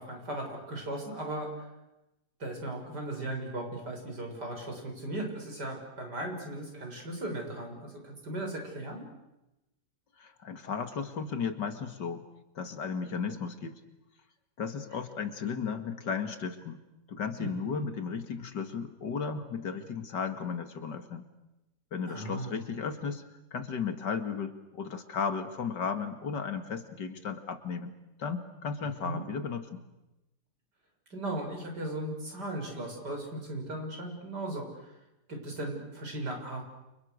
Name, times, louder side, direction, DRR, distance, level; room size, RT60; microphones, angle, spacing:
voice 1, 0.0-1.7 2.4-9.1 17.4-17.8 22.1-22.6 29.0-29.2 31.1-34.9 35.3-36.6, right 1 dB, 70° right, 2 dB, 7.6 m, -37 dB
voice 2, 10.2-12.2 12.6-13.8 14.6-16.8 17.1-21.3 21.9-23.2 23.5-27.9 28.2-29.8, left 6 dB, 80° left, 8 dB, 2.7 m, -35 dB
29.5 x 29.0 x 6.7 m, 0.95 s
omnidirectional pair, 1.9 m